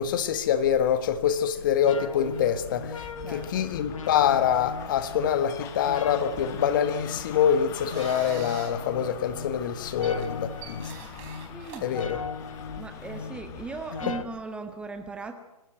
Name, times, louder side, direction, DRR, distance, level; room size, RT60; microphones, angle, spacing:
voice 1, 0.0-10.9 11.8-12.2 14.1-14.2, left 8 dB, 35° left, 1.5 m, -25 dB
sound 1, 1.9-14.2, left 5 dB, 60° left, 1.7 m, -39 dB
sound 2, 2.2-14.3, left 8 dB, 15° left, 1.2 m, -44 dB
voice 2, 3.2-3.7 11.5-11.9 12.8-15.3, right 4 dB, 5° right, 1.0 m, -38 dB
sound 3, 7.2-12.7, right 7 dB, 25° right, 4.0 m, -47 dB
25.5 x 13.0 x 9.0 m
figure-of-eight pair, 135°, 19 cm